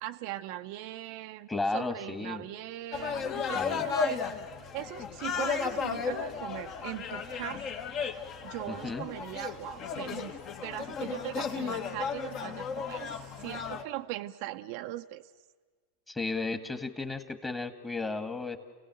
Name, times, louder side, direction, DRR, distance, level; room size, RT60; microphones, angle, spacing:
voice 1, 0.0-1.5 1.7-4.2 4.7-7.7 8.4-15.3, right 15 dB, 55° right, 7 dB, 0.7 m, -40 dB
voice 2, 1.5-2.5 3.5-3.9 8.7-9.1 16.1-18.6, left 3 dB, 10° left, 8 dB, 1.8 m, -34 dB
sound 1, 2.9-13.8, left 6 dB, 40° left, 1.7 m, -34 dB
30.0 x 17.0 x 7.8 m, 1.5 s
hypercardioid pair, 115°, 0 cm